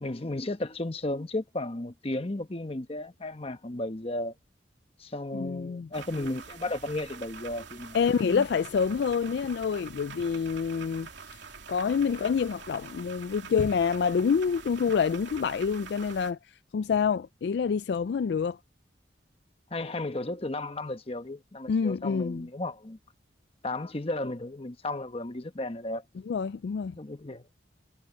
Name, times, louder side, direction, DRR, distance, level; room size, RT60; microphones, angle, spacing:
voice 1, 0.0-4.3 5.0-8.5 19.7-23.0 23.6-26.0 27.0-27.5, left 2 dB, 30° left, 1.0 m, -34 dB
voice 2, 5.3-5.9 7.9-11.1 11.7-16.4 16.7-18.6 21.7-22.5 26.3-27.0, left 6 dB, 65° left, 0.3 m, -27 dB
sound 1, 5.9-16.3, right 5 dB, 75° right, 2.9 m, -45 dB
head